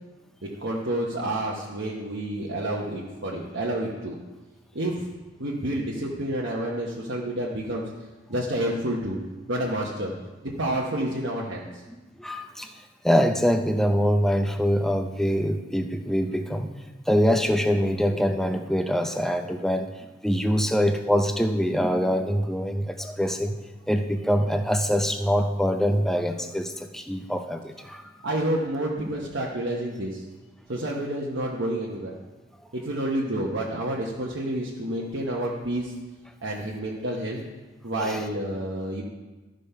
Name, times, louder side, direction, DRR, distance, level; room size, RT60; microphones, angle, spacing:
voice 1, 0.4-4.1 4.7-4.9 5.4-7.8 8.3-9.2 9.5-10.1 10.4-11.7 28.2-30.2 30.7-32.2 32.7-35.9 36.4-37.4 37.8-39.0, right 1 dB, 70° right, -3 dB, 1.0 m, -29 dB
voice 2, 12.2-12.7 13.0-16.7 17.1-19.9 20.2-23.6 23.9-28.0 38.0-38.2, equal, ahead, 5 dB, 0.5 m, -24 dB
13.0 x 5.2 x 5.6 m, 1.2 s
head